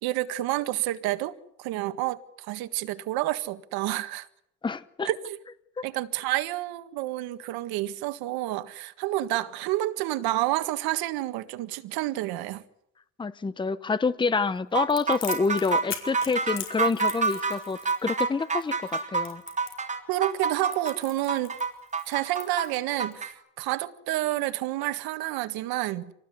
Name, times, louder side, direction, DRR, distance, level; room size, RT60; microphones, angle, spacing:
voice 1, 0.0-4.3 5.0-5.4 5.8-12.6 20.1-21.5 22.1-26.1, right 16 dB, 90° right, 1.8 m, -29 dB
voice 2, 4.6-5.1 13.2-19.4, left 4 dB, 15° left, 0.9 m, -27 dB
sound 1, 14.7-23.3, right 4 dB, 20° right, 3.4 m, -28 dB
Crackle, 14.9-23.1, left 7 dB, 35° left, 4.9 m, -41 dB
27.0 x 19.0 x 9.5 m
cardioid pair, 140°, 36 cm